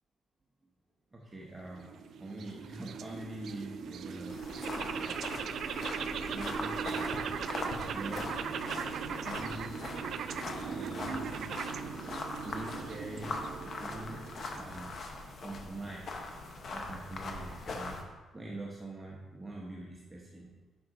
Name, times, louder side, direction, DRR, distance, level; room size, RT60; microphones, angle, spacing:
voice 1, 1.1-1.9 2.2-4.4 5.0-5.3 6.1-7.3 7.9-8.3 9.1-9.8 10.4-11.6 12.4-14.2 14.5-15.0 15.4-16.1 16.7-18.0 18.3-20.5, right 2 dB, 20° right, -2 dB, 0.9 m, -44 dB
sound 1, 1.6-15.0, right 6 dB, 65° right, 0.3 m, -39 dB
sound 2, 4.3-18.0, left 3 dB, 50° left, 1.0 m, -41 dB
6.1 x 5.9 x 3.9 m, 1.3 s
cardioid pair, 90°, 0 cm